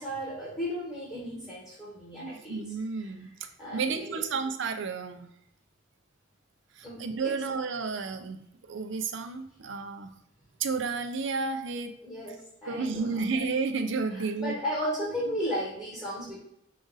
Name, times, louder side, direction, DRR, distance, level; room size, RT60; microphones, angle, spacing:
voice 1, 0.0-2.7 3.6-4.2 6.8-7.3 12.0-13.3 14.1-16.4, equal, 20° left, -7 dB, 1.3 m, -35 dB
voice 2, 2.1-3.3 3.7-5.3 7.0-10.1 10.6-11.9 12.7-14.6 15.0-15.4, right 4 dB, 65° right, 7 dB, 0.5 m, -32 dB
5.0 x 2.5 x 4.0 m, 0.74 s
head